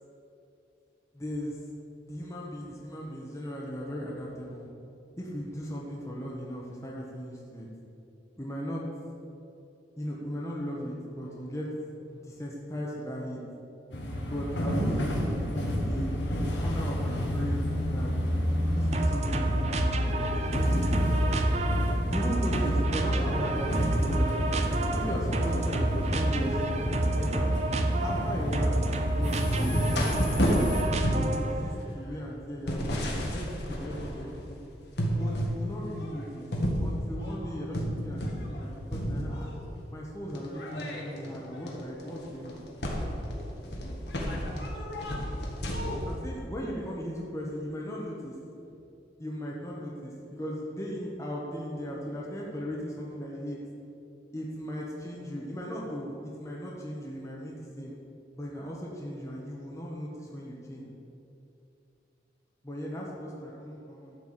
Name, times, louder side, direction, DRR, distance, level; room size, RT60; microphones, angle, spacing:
voice 1, 1.1-1.6 2.0-4.7 5.2-7.7 8.4-8.8 10.0-11.7 12.0-13.4 14.2-15.4 15.8-18.1 18.7-21.6 22.1-24.3 24.9-26.8 27.2-27.5 28.0-28.8 29.1-30.5 31.1-33.0 33.3-34.6 35.1-36.5 36.8-39.5 39.9-42.6 43.7-43.9 46.1-48.3 49.2-53.6 54.3-57.9 58.4-60.9 62.6-64.2, equal, 15° left, -4 dB, 1.3 m, -37 dB
sound 1, 13.9-30.8, equal, 90° left, 1.6 m, -30 dB
sound 2, 18.9-31.7, right 2 dB, 40° right, 0.7 m, -29 dB
sound 3, 29.3-34.5 34.9-35.6 36.0-38.6 38.9-39.7 40.3-46.2, equal, 70° left, 1.7 m, -31 dB
12.0 x 4.7 x 7.4 m, 2.7 s
head